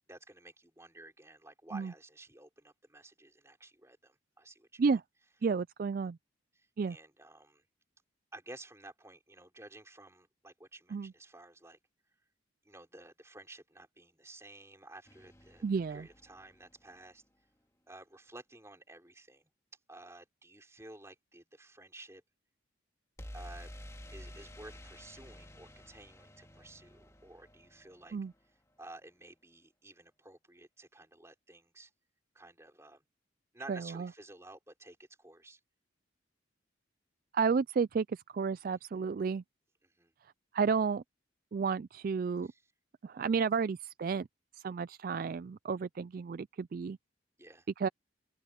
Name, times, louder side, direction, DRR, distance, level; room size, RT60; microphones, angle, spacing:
voice 1, 0.1-4.8 6.6-7.6 8.3-11.8 12.6-15.6 15.9-17.2 17.9-19.5 19.9-22.2 23.3-23.7 24.1-28.2 28.8-31.9 32.3-33.0 33.5-35.6 39.8-40.1 42.4-42.6 47.4-47.7, right 2 dB, 15° right, 5.4 m, -53 dB
voice 2, 5.4-6.2 6.8-7.0 10.9-11.1 15.6-16.1 28.1-28.3 33.7-34.1 37.3-39.4 40.5-41.0 41.5-42.5 43.0-44.3 44.6-47.0 47.8-47.9, right 5 dB, 45° right, 0.3 m, -32 dB
sound 1, 15.1-17.1 23.2-29.0, equal, 15° left, 2.0 m, -51 dB
open air
head